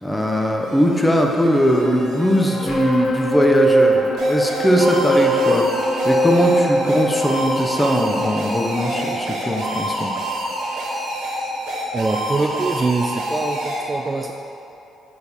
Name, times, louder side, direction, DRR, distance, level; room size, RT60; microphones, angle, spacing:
voice 1, 0.0-5.7 6.0-10.1, equal, 10° left, 1 dB, 0.7 m, -20 dB
sound 1, 0.6-11.0 11.4-11.5, right 1 dB, 35° left, 1.3 m, -22 dB
sound 2, 4.2-13.8, right 1 dB, 80° right, 1.3 m, -27 dB
voice 2, 11.9-14.3, right 3 dB, 25° right, 2 dB, 0.3 m, -23 dB
6.9 x 3.4 x 4.1 m, 2.9 s
cardioid pair, 90°, 0 cm